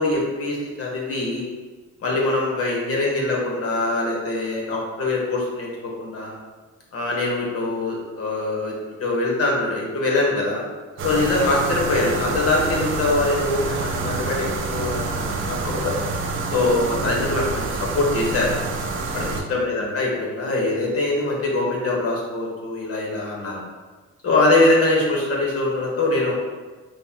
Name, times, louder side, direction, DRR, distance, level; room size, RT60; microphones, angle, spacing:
voice 1, 0.0-1.4 2.0-6.3 6.9-8.7 9.0-10.6 11.0-16.0 16.5-18.5 19.1-23.6 24.2-26.3, left 2 dB, 50° left, -2 dB, 1.2 m, -23 dB
sound 1, 11.0-19.4, right 3 dB, 45° right, 0.5 m, -27 dB
5.4 x 2.2 x 2.8 m, 1.3 s
cardioid pair, 90°, 30 cm